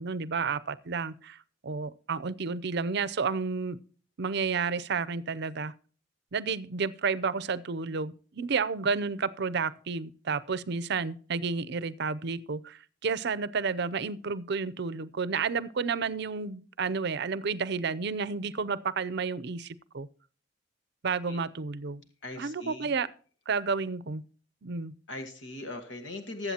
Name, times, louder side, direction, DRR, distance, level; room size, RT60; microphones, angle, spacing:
voice 1, 0.0-1.4 1.6-3.8 4.2-5.7 6.3-20.1 21.0-22.0 22.4-23.1 23.5-24.2 24.6-24.9, right 5 dB, 60° right, 0.6 m, -31 dB
voice 2, 22.2-22.9 25.1-26.5, left 2 dB, 70° left, 1.6 m, -39 dB
20.0 x 8.0 x 2.9 m
head